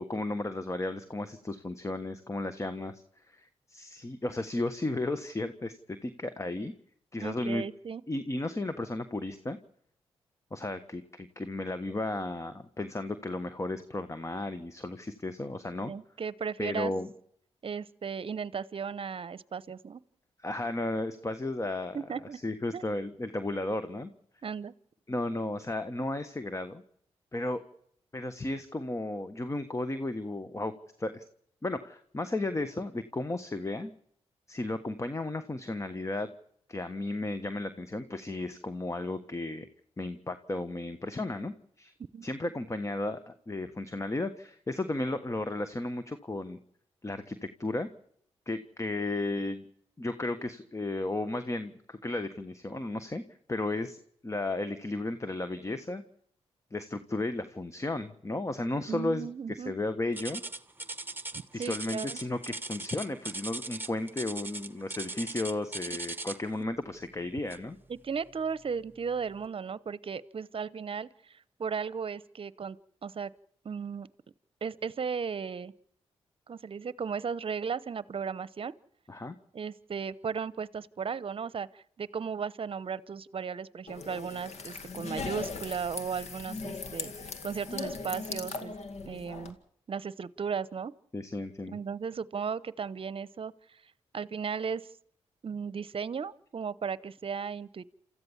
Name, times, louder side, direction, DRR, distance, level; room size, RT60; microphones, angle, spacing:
voice 1, 0.0-6.7 7.1-7.6 8.1-9.6 10.5-15.9 16.6-17.1 20.4-22.0 22.3-24.1 25.1-26.8 27.3-27.6 28.1-30.7 31.0-31.2 31.6-33.9 34.5-36.3 36.7-39.7 40.0-41.9 42.2-46.6 47.0-47.9 48.5-49.6 50.0-53.2 53.5-56.0 56.7-60.4 61.5-67.8 79.1-79.4 91.1-91.8, left 2 dB, 25° left, 10 dB, 1.4 m, -34 dB
voice 2, 7.2-8.0 15.8-16.9 17.6-20.0 21.9-22.4 22.7-22.8 24.4-24.7 42.1-42.3 58.9-59.7 61.5-62.2 67.9-72.8 73.0-73.3 73.6-74.1 74.6-75.7 76.5-78.7 79.5-87.1 87.4-88.7 89.1-89.6 89.9-90.9 91.7-93.8 94.1-94.8 95.4-97.9, right 6 dB, 50° right, 19 dB, 0.9 m, -35 dB
sound 1, 60.2-66.5 67.5-67.8 68.3-68.4 69.1-69.2, right 2 dB, 15° right, 1.3 m, -39 dB
sound 2, 83.9-89.5, left 4 dB, 70° left, 2.2 m, -39 dB
28.5 x 14.5 x 7.3 m, 0.68 s
supercardioid pair, 55°, 12 cm